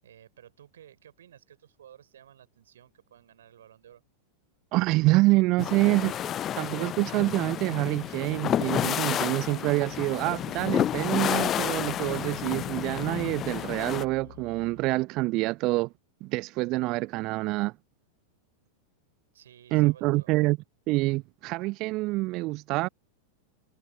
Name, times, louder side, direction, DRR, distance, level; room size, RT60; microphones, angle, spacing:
voice 1, 0.0-4.0 19.3-20.4, right 10 dB, 60° right, 4.8 m, -54 dB
voice 2, 4.7-15.9 16.2-17.7 19.7-20.6 20.9-22.9, right 21 dB, 40° right, 0.3 m, -26 dB
sound 1, 5.6-14.1, left 11 dB, 30° left, 0.5 m, -30 dB
sound 2, 8.5-15.0, left 14 dB, 55° left, 1.1 m, -48 dB
figure-of-eight pair, 90°, 0 cm